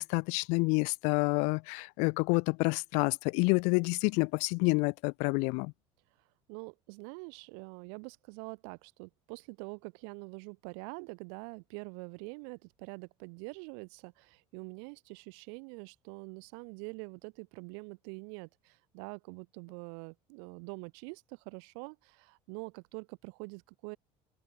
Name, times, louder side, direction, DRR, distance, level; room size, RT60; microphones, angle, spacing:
voice 1, 0.0-5.7, left 32 dB, 80° left, 0.9 m, -28 dB
voice 2, 6.5-24.0, right 40 dB or more, 85° right, 3.7 m, -45 dB
open air
cardioid pair, 135°, 12 cm